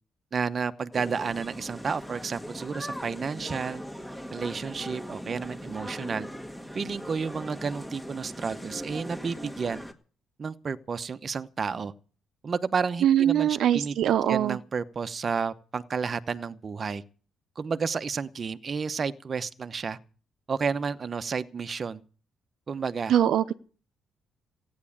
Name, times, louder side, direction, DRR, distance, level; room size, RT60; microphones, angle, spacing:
voice 1, 0.3-3.8 4.3-6.3 6.7-9.8 10.4-11.9 12.4-13.9 14.3-17.0 17.6-20.0 20.5-22.0 22.7-23.1, right 5 dB, 35° right, 0.9 m, -31 dB
sound 1, 0.9-9.9, equal, 5° left, 1.7 m, -40 dB
voice 2, 13.0-14.6 23.1-23.5, right 10 dB, 70° right, 0.8 m, -22 dB
15.5 x 9.6 x 8.7 m
cardioid pair, 115°, 0 cm